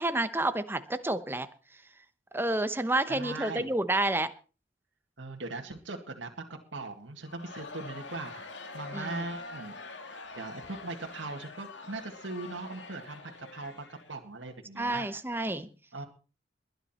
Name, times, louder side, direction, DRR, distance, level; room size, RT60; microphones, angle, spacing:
voice 1, 0.0-1.5 2.3-4.3 8.9-9.2 14.8-15.7, right 2 dB, 10° right, 11 dB, 1.0 m, -29 dB
voice 2, 3.1-3.7 5.2-6.3 6.7-8.4 8.7-9.8 10.4-15.1 15.9-16.1, right 3 dB, 85° right, 2 dB, 2.1 m, -39 dB
Crowd, 7.2-14.5, left 3 dB, 80° left, 2.2 m, -45 dB
21.0 x 10.0 x 4.4 m, 0.35 s
head